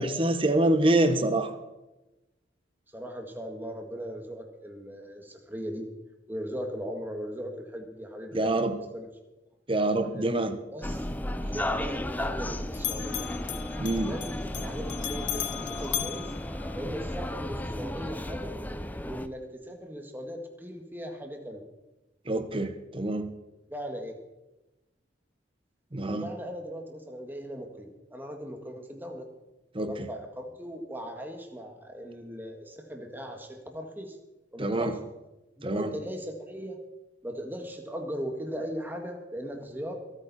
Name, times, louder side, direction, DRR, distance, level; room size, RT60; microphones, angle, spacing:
voice 1, 0.0-1.5 8.3-8.7 9.7-10.6 13.8-14.1 22.3-23.3 25.9-26.2 29.7-29.9 34.6-34.9 35.6-35.9, right 1 dB, 30° right, 9 dB, 1.1 m, -26 dB
voice 2, 2.9-5.9 6.3-8.6 8.9-9.1 10.0-10.4 10.7-11.1 11.4-13.3 14.0-16.3 16.7-18.5 19.0-21.6 23.7-24.2 26.1-29.3 29.9-34.2 34.5-35.0 35.6-36.8 37.2-40.0, equal, 10° right, 3 dB, 1.8 m, -38 dB
sound 1, 10.8-19.3, left 1 dB, 10° left, 0.5 m, -34 dB
Bell, 12.7-17.2, left 15 dB, 75° left, 0.6 m, -37 dB
24.5 x 9.2 x 4.3 m, 1.0 s
head